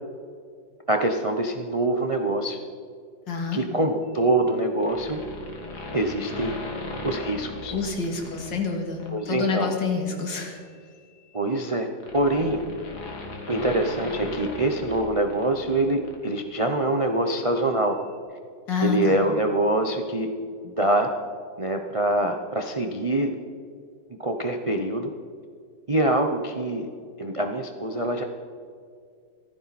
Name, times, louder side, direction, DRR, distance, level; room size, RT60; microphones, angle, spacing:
voice 1, 0.9-2.6 3.5-5.2 5.9-6.6 7.0-7.7 9.1-9.7 11.3-12.6 13.5-18.0 18.8-20.3 20.6-21.1 21.6-23.3 24.2-25.1 25.9-26.9 27.2-28.2, right 1 dB, 65° right, 4 dB, 0.3 m, -24 dB
voice 2, 3.3-3.6 7.7-10.6 18.7-19.2, left 5 dB, 70° left, 2 dB, 2.6 m, -28 dB
sound 1, 4.8-8.5 9.0-9.2 10.4-15.8 16.0-16.1, left 2 dB, 55° left, 2.4 m, -37 dB
16.5 x 14.5 x 4.2 m, 2.2 s
omnidirectional pair, 2.1 m